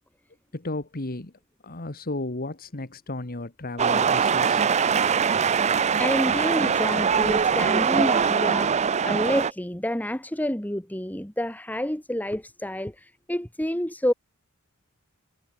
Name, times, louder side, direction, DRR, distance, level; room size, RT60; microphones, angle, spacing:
voice 1, 0.5-1.3 1.6-4.6, left 2 dB, 45° left, 1.7 m, -33 dB
sound 1, 3.8-9.5, right 6 dB, 30° right, 0.5 m, -22 dB
voice 2, 6.0-8.7 9.0-14.1, left 1 dB, 10° left, 2.3 m, -28 dB
head